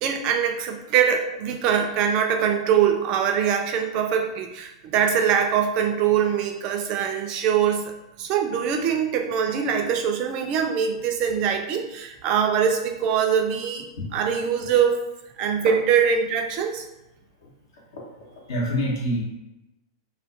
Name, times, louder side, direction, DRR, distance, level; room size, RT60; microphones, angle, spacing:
voice 1, 0.0-7.9 8.2-15.0 15.4-16.8, right 8 dB, 40° right, 4 dB, 0.3 m, -23 dB
voice 2, 17.4-19.2, equal, 65° left, -3 dB, 0.8 m, -29 dB
2.3 x 2.2 x 2.5 m, 0.98 s
figure-of-eight pair, 100°, 2 cm